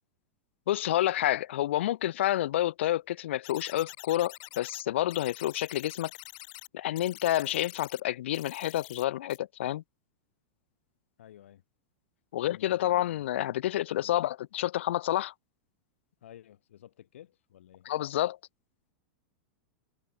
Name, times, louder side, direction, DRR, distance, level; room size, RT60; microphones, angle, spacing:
voice 1, 0.7-6.1 6.7-9.8 12.3-15.3 17.9-18.4, left 13 dB, 70° left, 0.4 m, -29 dB
sound 1, 3.4-4.8 5.1-6.7 7.0-8.0 8.3-9.0 9.3-9.4, left 24 dB, 40° left, 0.7 m, -46 dB
voice 2, 11.2-11.6 12.4-13.3 13.9-14.2 16.2-17.9, left 11 dB, 85° left, 7.9 m, -53 dB
supercardioid pair, 180°, 7 cm